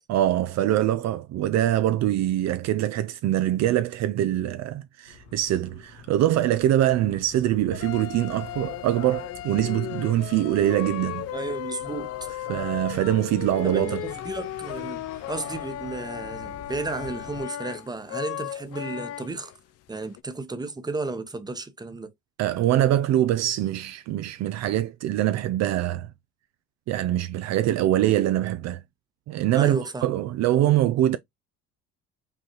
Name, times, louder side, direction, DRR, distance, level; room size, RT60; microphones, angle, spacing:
voice 1, 0.1-11.3 12.5-14.0 22.4-26.1 26.9-28.8 29.3-31.2, right 13 dB, 60° right, 0.4 m, -23 dB
sound 1, 5.1-17.4, left 4 dB, 80° left, 1.6 m, -48 dB
sound 2, 7.7-19.6 19.9-20.2, left 13 dB, 50° left, 0.4 m, -36 dB
voice 2, 11.3-12.3 13.6-19.5 19.9-22.1 29.5-30.1, right 3 dB, 15° right, 0.8 m, -33 dB
5.4 x 2.3 x 2.9 m
supercardioid pair, 80°, 31 cm